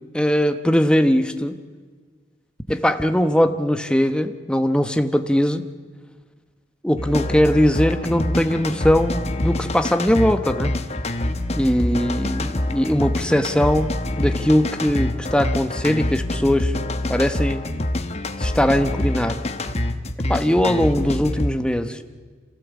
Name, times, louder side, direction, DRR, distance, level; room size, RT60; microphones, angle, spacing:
voice 1, 0.1-1.6 2.7-5.6 6.8-10.7 11.6-16.7 17.1-17.6 18.4-19.4 20.3-22.0, equal, 5° left, 8 dB, 1.0 m, -20 dB
sound 1, 7.0-21.5, left 1 dB, 35° left, 1.2 m, -26 dB
27.0 x 16.5 x 8.3 m, 1.5 s
head